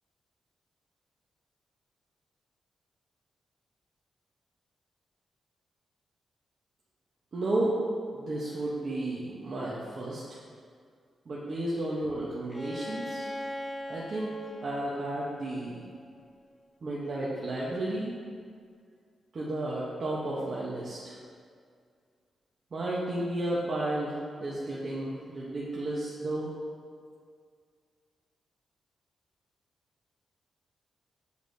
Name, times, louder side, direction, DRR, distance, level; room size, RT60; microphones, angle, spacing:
voice 1, 7.3-7.8 8.1-10.2 11.3-13.3 13.9-15.8 16.8-18.1 19.3-21.2 22.7-26.5, right 1 dB, 40° right, -7 dB, 0.8 m, -33 dB
Bowed string instrument, 12.5-16.3, left 1 dB, 15° left, 0.4 m, -40 dB
8.2 x 4.9 x 2.6 m, 2.1 s
wide cardioid pair, 145°, 0 cm